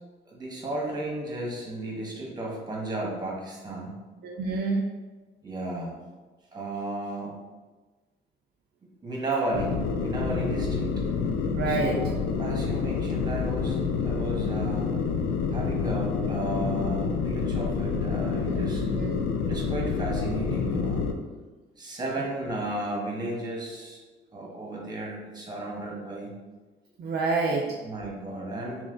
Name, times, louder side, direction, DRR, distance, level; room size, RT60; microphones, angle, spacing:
voice 1, 0.2-4.0 5.4-5.9 6.5-7.4 9.0-10.9 11.7-15.0 15.5-18.8 19.4-21.0 21.8-24.0 24.3-26.4 27.8-28.8, right 2 dB, 20° right, -3 dB, 1.3 m, -34 dB
voice 2, 4.2-4.9 11.5-12.0 18.5-19.2 22.2-22.3 27.0-27.8, right 3 dB, 55° right, -1 dB, 0.5 m, -28 dB
sound 1, 9.5-21.1, left 5 dB, 90° left, 0.4 m, -28 dB
3.2 x 3.0 x 3.8 m, 1.3 s
cardioid pair, 90°, 20 cm